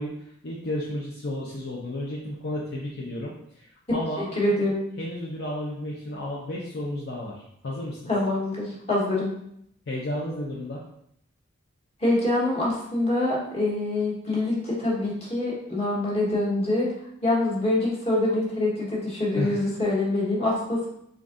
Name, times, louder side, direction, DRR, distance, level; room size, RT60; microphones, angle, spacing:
voice 1, 0.0-4.2 5.0-8.1 9.9-10.8 19.4-19.6, left 1 dB, 55° left, -4 dB, 0.6 m, -32 dB
voice 2, 4.2-4.8 8.1-9.3 12.0-16.9 17.2-20.9, left 2 dB, 30° left, -6 dB, 1.2 m, -25 dB
3.8 x 3.5 x 2.5 m, 0.72 s
head